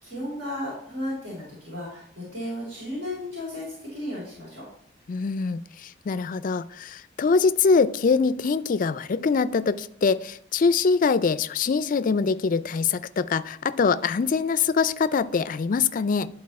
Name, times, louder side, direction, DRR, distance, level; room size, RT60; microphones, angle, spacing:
voice 1, 0.0-4.6, left 1 dB, 70° right, -6 dB, 3.6 m, -34 dB
voice 2, 5.1-16.3, left 5 dB, 45° left, 15 dB, 0.4 m, -23 dB
10.5 x 4.1 x 4.2 m, 0.64 s
head